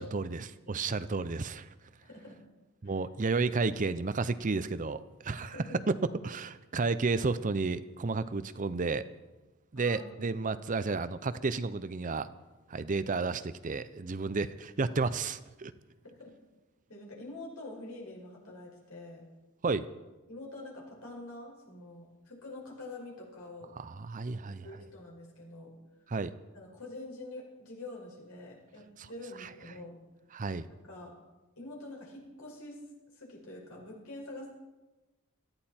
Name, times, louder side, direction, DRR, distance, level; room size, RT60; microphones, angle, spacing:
voice 1, 0.0-1.7 2.8-5.6 5.9-9.1 9.7-12.3 12.7-15.7 19.6-19.9 23.8-24.7 26.1-26.3 29.4-29.5 30.3-30.7, right 4 dB, 35° right, 13 dB, 0.6 m, -32 dB
voice 2, 2.0-2.4 2.8-2.9 5.4-5.8 9.8-10.3 16.2-16.3 16.9-19.3 20.3-23.7 24.6-25.8 26.5-30.0 30.7-31.1 31.6-32.8 33.1-34.5, left 2 dB, 80° left, -2 dB, 5.3 m, -46 dB
18.5 x 13.5 x 4.4 m, 1.1 s
head